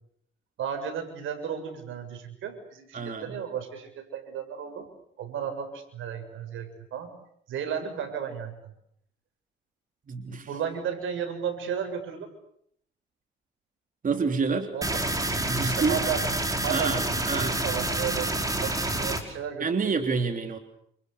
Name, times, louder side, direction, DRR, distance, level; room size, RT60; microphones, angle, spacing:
voice 1, 0.6-4.9 5.2-7.1 7.5-8.5 10.2-12.3 14.7-15.0 15.6-18.3 18.6-19.9, right 8 dB, 80° right, 7 dB, 6.9 m, -34 dB
voice 2, 2.9-3.4 10.1-10.5 14.0-14.7 15.4-16.0 16.7-17.5 19.6-20.6, right 4 dB, 45° right, 6 dB, 3.4 m, -28 dB
sound 1, 14.8-19.2, right 1 dB, 15° right, 5.5 m, -28 dB
29.0 x 29.0 x 7.0 m, 0.69 s
cardioid pair, 90°, 20 cm